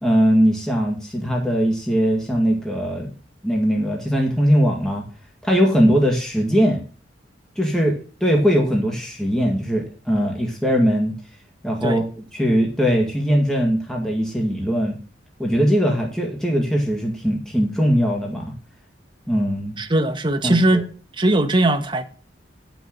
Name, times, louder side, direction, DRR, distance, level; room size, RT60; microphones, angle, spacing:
voice 1, 0.0-3.1 3.4-5.0 5.4-6.8 7.6-7.9 8.2-11.1 11.6-12.0 12.3-15.0 15.4-18.5 19.3-19.8 20.4-20.8, equal, 5° left, 2.0 m, -20 dB
voice 2, 19.8-20.8 21.2-22.0, right 1 dB, 25° right, 0.9 m, -19 dB
9.8 x 6.1 x 6.7 m
head